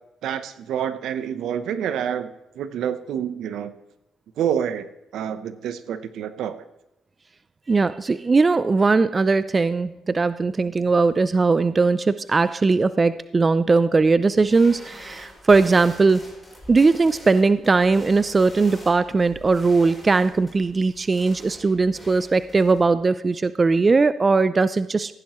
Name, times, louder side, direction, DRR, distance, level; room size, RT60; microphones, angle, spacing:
voice 1, 0.2-3.7 4.4-4.9 5.1-6.6, right 9 dB, 80° right, 12 dB, 0.8 m, -28 dB
voice 2, 7.7-16.2 16.7-25.1, right 4 dB, 30° right, 14 dB, 0.4 m, -19 dB
sound 1, 14.3-22.8, equal, 5° left, 4.0 m, -44 dB
15.5 x 10.5 x 3.0 m, 0.91 s
cardioid pair, 90°, 0 cm